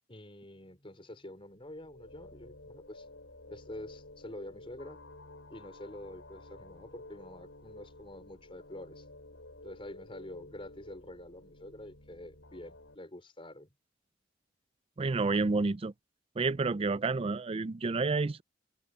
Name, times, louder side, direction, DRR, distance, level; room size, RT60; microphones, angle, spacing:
voice 1, 0.1-3.0 3.5-5.0 5.5-9.0 9.6-13.7, left 1 dB, 30° left, 4.4 m, -47 dB
sound 1, 1.4-12.9, left 2 dB, 75° left, 6.5 m, -52 dB
voice 2, 15.0-15.9 16.4-18.4, right 3 dB, 30° right, 0.4 m, -29 dB
head